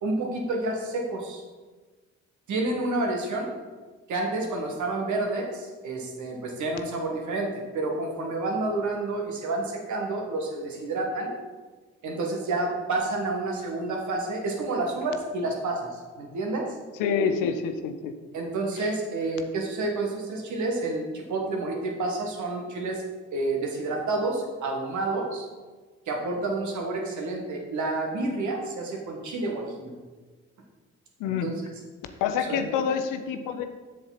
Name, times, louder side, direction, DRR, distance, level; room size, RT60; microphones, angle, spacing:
voice 1, 0.0-1.4 2.5-3.5 4.1-11.4 12.0-16.7 18.3-23.0 23.3-25.5 26.1-29.9 31.3-31.5 32.5-32.6, right 2 dB, 55° right, 1 dB, 1.8 m, -29 dB
voice 2, 17.0-18.1 18.8-18.9 31.2-31.5 32.2-33.6, left 6 dB, 65° left, 8 dB, 0.8 m, -27 dB
7.7 x 6.9 x 4.2 m, 1.3 s
figure-of-eight pair, 45°, 34 cm